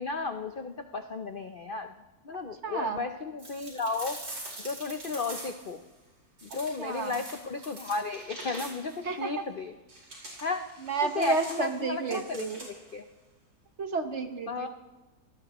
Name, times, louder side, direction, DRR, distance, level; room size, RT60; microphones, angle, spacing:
voice 1, 0.0-1.9 2.2-4.2 4.6-5.8 6.4-9.7 10.4-10.7 11.0-13.0 14.5-14.7, left 4 dB, 55° left, 7 dB, 0.5 m, -34 dB
voice 2, 2.6-3.0 6.5-7.2 9.0-9.4 10.8-12.6 13.8-14.7, right 4 dB, 45° right, 7 dB, 1.2 m, -31 dB
sound 1, 3.4-5.8 6.4-9.0 9.9-12.9, right 1 dB, 85° right, 5.4 m, -44 dB
25.5 x 18.5 x 3.1 m, 1.1 s
omnidirectional pair, 1.8 m